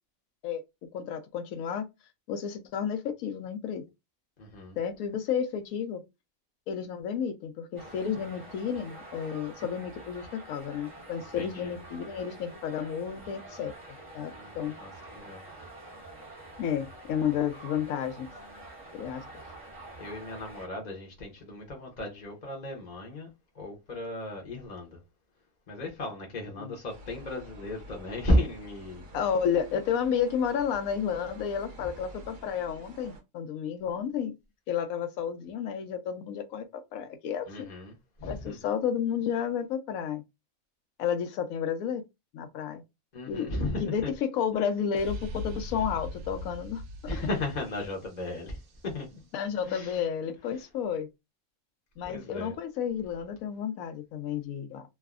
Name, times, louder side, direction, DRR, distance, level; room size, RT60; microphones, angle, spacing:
voice 1, 0.9-1.9 2.3-3.8 4.8-6.0 6.7-13.7 14.1-14.7 16.6-18.3 18.9-19.4 26.6-26.7 29.1-34.3 34.7-37.7 38.2-40.2 41.0-42.0 42.3-42.8 43.3-46.8 49.3-51.1 52.0-54.8, left 8 dB, 80° left, 1.0 m, -31 dB
voice 2, 4.4-4.8 11.3-11.8 14.3-15.4 20.0-23.3 23.5-25.0 25.7-29.1 37.5-38.6 43.1-44.1 47.1-49.2 49.6-50.0 52.1-52.6, left 1 dB, 40° left, 0.7 m, -34 dB
sound 1, 7.8-20.7, right 2 dB, 10° right, 0.8 m, -47 dB
sound 2, 26.9-33.2, right 1 dB, 70° right, 1.3 m, -49 dB
sound 3, 45.0-48.7, left 2 dB, 90° right, 1.0 m, -39 dB
3.3 x 2.0 x 2.3 m
omnidirectional pair, 1.4 m